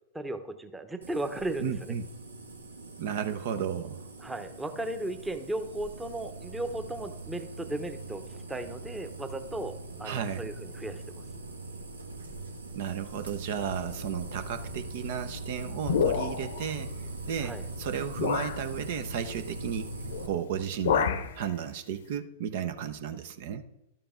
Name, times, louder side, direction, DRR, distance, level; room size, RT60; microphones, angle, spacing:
voice 1, 0.1-1.9 4.2-11.1 17.4-17.6, right 1 dB, 10° right, 8 dB, 0.9 m, -36 dB
sound 1, 1.0-20.3, right 2 dB, 85° right, 1.3 m, -42 dB
voice 2, 1.6-2.1 3.0-4.0 10.0-10.5 12.7-19.9 20.2-23.6, right 8 dB, 55° right, 10 dB, 0.7 m, -34 dB
sound 2, 15.8-16.6 17.5-17.6 18.2-18.6 20.0-20.3 20.5-21.3, left 7 dB, 65° left, 0.7 m, -28 dB
12.0 x 6.8 x 3.8 m, 0.91 s
figure-of-eight pair, 100°, 0 cm